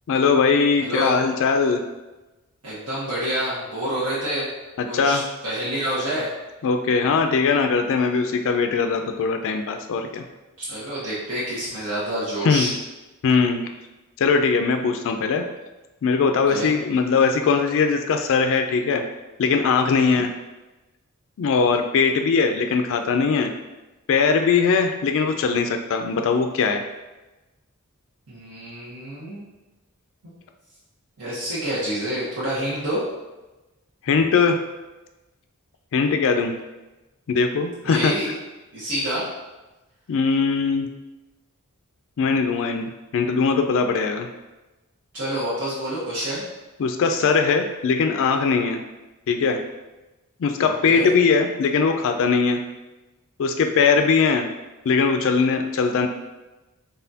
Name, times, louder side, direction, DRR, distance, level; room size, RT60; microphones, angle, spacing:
voice 1, 0.1-1.8 4.8-5.2 6.6-10.3 12.4-12.7 13.2-13.6 14.2-15.5 16.0-19.0 19.4-20.3 21.4-23.5 24.1-26.9 34.0-34.6 35.9-36.5 37.3-38.1 40.1-40.9 42.2-44.3 46.8-48.8 49.3-49.6 50.4-52.6 53.4-54.5 54.9-56.1, left 5 dB, 60° left, 6 dB, 0.4 m, -20 dB
voice 2, 0.8-1.2 2.6-4.5 4.9-6.3 10.7-12.7 16.5-16.7 19.9-20.2 28.3-29.4 31.2-33.0 37.8-38.3 38.7-39.2 45.1-46.4 50.6-51.1, right 1 dB, 75° right, -10 dB, 1.3 m, -28 dB
4.1 x 3.6 x 2.7 m, 1.1 s
head